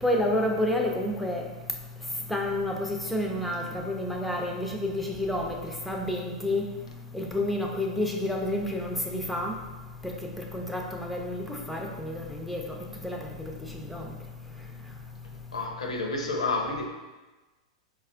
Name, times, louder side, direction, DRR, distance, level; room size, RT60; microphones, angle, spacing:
voice 1, 0.0-1.5 2.3-6.7 7.1-9.5 10.0-10.1 10.5-12.6 13.0-13.2 13.9-14.1, left 1 dB, ahead, 1 dB, 0.4 m, -29 dB
voice 2, 15.5-16.9, left 3 dB, 80° left, 2 dB, 0.5 m, -29 dB
4.2 x 2.3 x 2.4 m, 1.2 s
hypercardioid pair, 100°, 3 cm